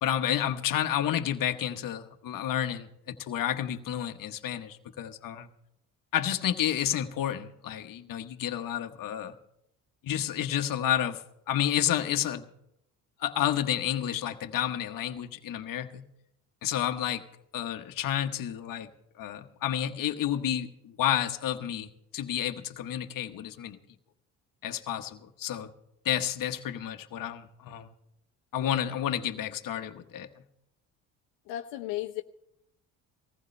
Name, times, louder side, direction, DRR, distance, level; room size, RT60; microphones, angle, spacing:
voice 1, 0.0-5.5 6.1-9.3 10.0-12.5 13.2-16.1 16.6-17.2 17.5-18.9 19.2-23.8 24.6-25.7 26.0-27.9 28.5-30.3, left 11 dB, 60° left, 7 dB, 1.2 m, -30 dB
voice 2, 31.5-32.2, left 14 dB, 85° left, 4 dB, 0.8 m, -34 dB
20.0 x 15.0 x 3.3 m, 0.78 s
supercardioid pair, 75°, 38 cm